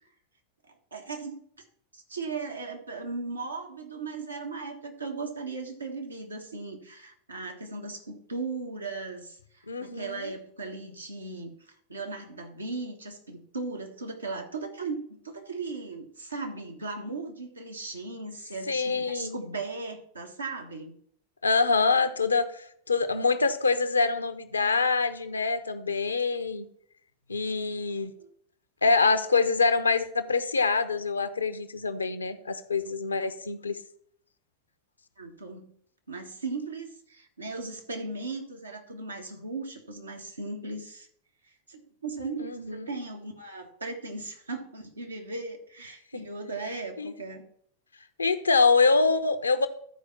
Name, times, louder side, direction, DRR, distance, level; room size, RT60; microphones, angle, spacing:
voice 1, 0.6-1.4 1.9-20.9 27.4-27.8 28.2-28.3 35.2-35.7 36.1-41.1 41.7-47.4, right 3 dB, 80° right, 2 dB, 1.5 m, -37 dB
voice 2, 9.7-10.3 18.7-19.4 21.4-26.7 27.3-28.1 28.8-33.8 42.4-42.9 46.1-46.2 47.0-47.1 48.2-49.7, left 4 dB, 75° left, 11 dB, 0.8 m, -25 dB
12.5 x 4.8 x 5.8 m, 0.64 s
figure-of-eight pair, 90°, 0 cm